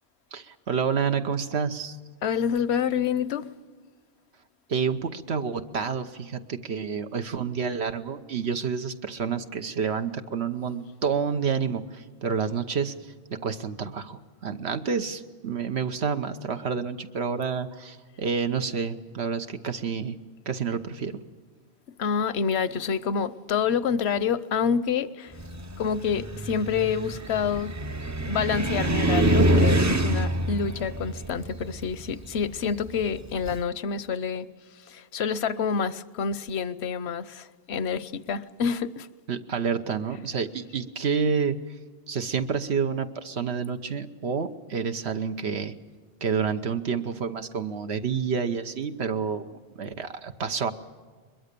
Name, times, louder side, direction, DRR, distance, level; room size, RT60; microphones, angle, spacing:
voice 1, 0.3-2.0 4.7-20.2 20.5-21.2 39.3-41.6 42.1-45.7 46.2-50.7, right 6 dB, 80° right, 1.3 m, -29 dB
voice 2, 2.2-3.5 22.0-25.4 25.8-27.7 28.3-39.1, left 6 dB, 80° left, 1.1 m, -28 dB
Car, 25.4-33.6, right 1 dB, 20° right, 0.5 m, -26 dB
22.0 x 22.0 x 6.8 m
omnidirectional pair, 1.1 m